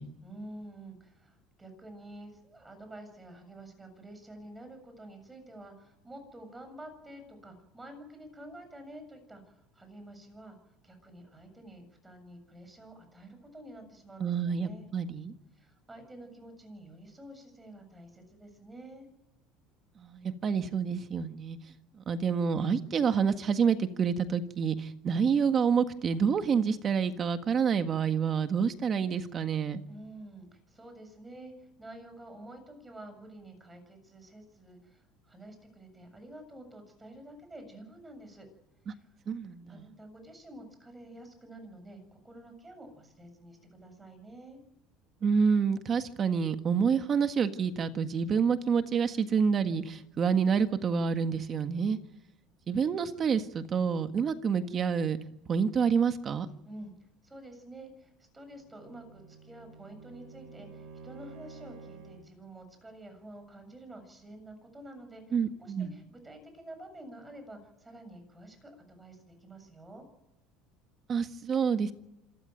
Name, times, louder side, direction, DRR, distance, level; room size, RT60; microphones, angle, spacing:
voice 1, 0.2-10.6 10.8-14.8 15.6-19.1 29.9-38.5 38.9-39.2 39.7-44.6 56.6-70.1, right 1 dB, 10° right, 6 dB, 7.3 m, -49 dB
voice 2, 14.2-15.3 20.0-21.6 22.0-29.8 38.9-39.0 39.3-39.8 45.2-52.0 52.7-55.2 55.5-56.5 65.3-65.9 71.1-71.9, right 6 dB, 30° right, 9 dB, 1.7 m, -28 dB
Bowed string instrument, 58.5-62.4, right 4 dB, 45° right, 5.4 m, -50 dB
27.0 x 14.0 x 9.3 m, 0.95 s
cardioid pair, 145°, 0 cm